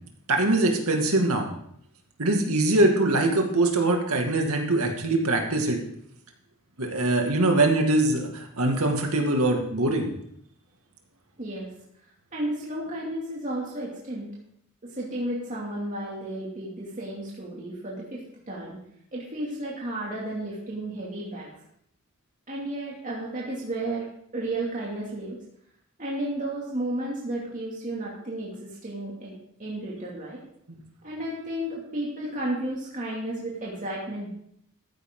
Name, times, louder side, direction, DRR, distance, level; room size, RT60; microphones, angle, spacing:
voice 1, 0.3-1.5 2.2-5.8 6.8-10.1, right 2 dB, 70° right, 3 dB, 2.2 m, -23 dB
voice 2, 11.4-11.7 12.3-14.3 14.8-18.8 19.1-21.5 22.5-24.1 24.3-25.4 26.0-30.4 31.0-34.3, right 1 dB, 35° right, -5 dB, 2.6 m, -33 dB
14.0 x 9.8 x 3.9 m, 0.71 s
head